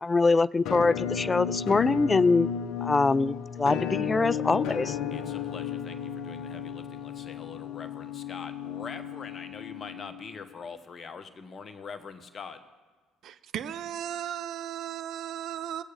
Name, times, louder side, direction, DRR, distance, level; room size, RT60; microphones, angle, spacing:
voice 1, 0.0-2.5 2.8-5.0, left 3 dB, 25° left, 0.3 m, -24 dB
Musical instrument, 0.7-10.4, left 8 dB, 65° left, 0.7 m, -34 dB
voice 2, 5.1-12.6, left 5 dB, 40° left, 1.2 m, -43 dB
voice 3, 13.2-15.8, right 10 dB, 60° right, 0.7 m, -36 dB
20.0 x 7.9 x 3.5 m
hypercardioid pair, 55°, 0 cm